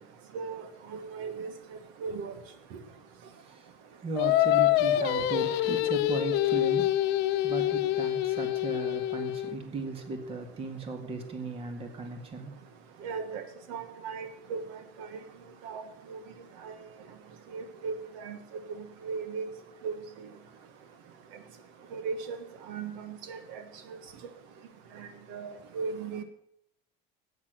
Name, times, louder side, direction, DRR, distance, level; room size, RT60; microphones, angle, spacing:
voice 1, 0.9-2.3 13.0-13.4 13.7-14.7 15.0-15.2 15.6-16.2 16.6-16.8 17.5-18.4 19.0-19.5 19.8-19.9 21.9-22.4 22.7-23.6 25.0-26.2, right 5 dB, 85° right, 9 dB, 1.5 m, -37 dB
voice 2, 4.0-7.0 7.4-12.5, right 3 dB, 30° right, 6 dB, 1.8 m, -36 dB
Singing, 4.2-9.5, left 13 dB, 60° left, 0.9 m, -26 dB
10.5 x 8.6 x 7.7 m, 0.72 s
cardioid pair, 165°, 19 cm